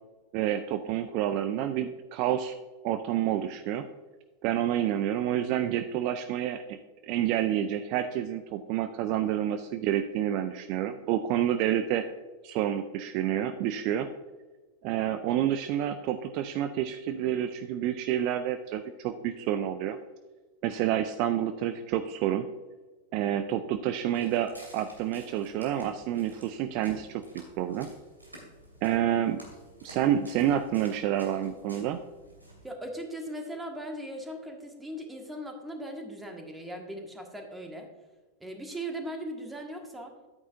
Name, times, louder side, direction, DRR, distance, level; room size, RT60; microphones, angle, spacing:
voice 1, 0.3-2.6 2.8-3.9 4.4-12.1 12.4-14.1 14.8-20.0 20.6-22.5 23.1-27.9 28.8-29.4 29.8-32.0, right 11 dB, 45° right, 10 dB, 0.4 m, -29 dB
Walk footsteps, 24.0-32.7, right 1 dB, 85° right, 2.7 m, -52 dB
voice 2, 32.6-37.9 38.4-40.1, right 1 dB, 10° right, 2 dB, 1.6 m, -39 dB
10.5 x 9.1 x 2.6 m, 1.3 s
figure-of-eight pair, 90°, 0 cm